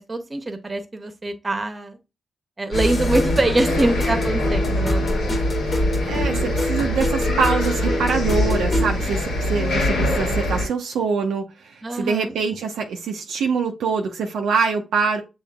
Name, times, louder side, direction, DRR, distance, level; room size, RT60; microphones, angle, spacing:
voice 1, 0.0-2.0 2.6-5.3 11.8-12.3, right 2 dB, 35° right, 1.1 m, -24 dB
sound 1, 2.7-10.7, left 1 dB, 85° left, 1.5 m, -23 dB
sound 2, 2.7-8.9, left 2 dB, 45° left, 1.4 m, -26 dB
voice 2, 6.1-15.2, right 5 dB, 80° right, 0.6 m, -24 dB
7.0 x 3.1 x 2.3 m
supercardioid pair, 40°, 0 cm